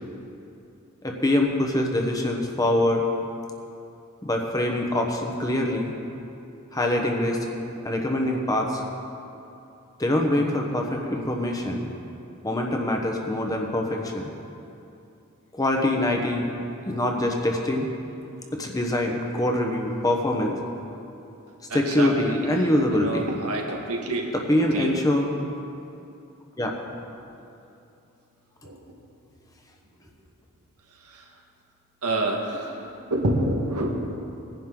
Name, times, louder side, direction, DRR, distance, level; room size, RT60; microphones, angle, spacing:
voice 1, 1.0-3.1 4.2-5.9 6.7-7.5 7.8-8.8 10.0-11.9 12.4-14.3 15.5-16.5 16.9-17.9 18.5-20.6 21.7-23.3 24.3-25.3 26.6-26.7, left 1 dB, 15° left, 1 dB, 1.0 m, -24 dB
voice 2, 21.7-24.2 24.6-25.0 28.6-28.8 31.0-31.3 32.0-34.1, right 1 dB, 85° right, 1 dB, 1.6 m, -28 dB
17.5 x 10.5 x 3.8 m, 2.7 s
head